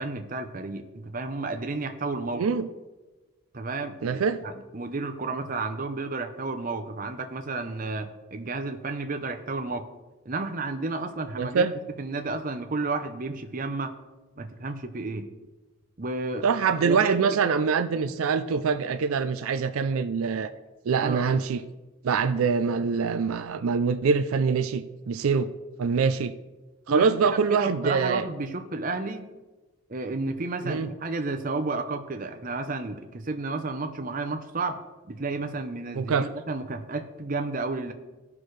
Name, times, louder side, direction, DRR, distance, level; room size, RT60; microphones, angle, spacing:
voice 1, 0.0-2.5 3.5-9.8 10.2-11.6 12.0-13.9 14.4-15.3 16.0-16.4 16.8-17.2 18.8-18.9 21.0-21.2 26.9-29.3 29.9-34.8 35.1-37.9, right 3 dB, 40° right, 7 dB, 0.7 m, -32 dB
voice 2, 2.4-2.7 4.0-4.4 11.4-11.7 16.4-20.5 20.9-21.6 22.0-25.5 25.8-26.3 26.9-28.2 30.6-30.9 35.9-36.3, right 5 dB, 80° right, 10 dB, 0.4 m, -24 dB
16.0 x 6.0 x 3.2 m, 1.2 s
head